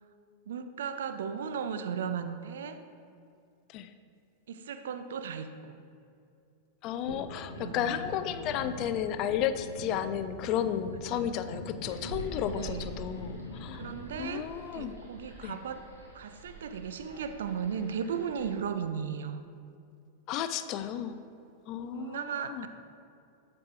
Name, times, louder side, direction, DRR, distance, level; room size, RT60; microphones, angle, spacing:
voice 1, 0.5-2.8 4.5-5.8 7.5-8.1 11.1-11.2 12.5-12.9 13.8-14.5 14.7-15.8 16.1-19.4 21.9-22.7, right 7 dB, 60° right, 10 dB, 0.4 m, -36 dB
voice 2, 6.8-15.0 15.4-15.6 20.3-21.2 21.7-22.7, left 9 dB, 40° left, 11 dB, 0.3 m, -33 dB
sound 1, 7.1-14.0, left 2 dB, 80° left, 0.7 m, -43 dB
sound 2, 11.9-18.5, right 2 dB, 90° right, 1.3 m, -47 dB
12.5 x 4.7 x 2.5 m, 2.4 s
figure-of-eight pair, 90°, 0 cm